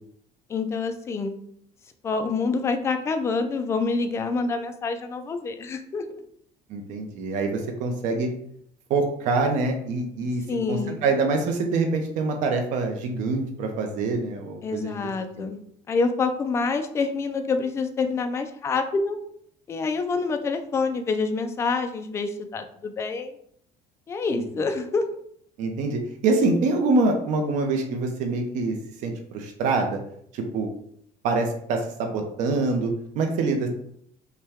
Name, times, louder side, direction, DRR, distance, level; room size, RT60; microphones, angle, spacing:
voice 1, 0.5-1.4 2.0-6.2 10.5-11.0 14.6-15.6 15.9-19.2 19.7-23.3 24.1-25.0, left 4 dB, 20° left, 7 dB, 0.3 m, -27 dB
voice 2, 6.7-8.3 8.9-10.4 10.7-15.0 24.3-24.4 25.6-28.7 29.0-30.0 30.3-30.7 31.2-33.7, right 3 dB, 55° right, 3 dB, 0.7 m, -25 dB
5.6 x 2.2 x 3.5 m, 0.68 s
cardioid pair, 170°, 15 cm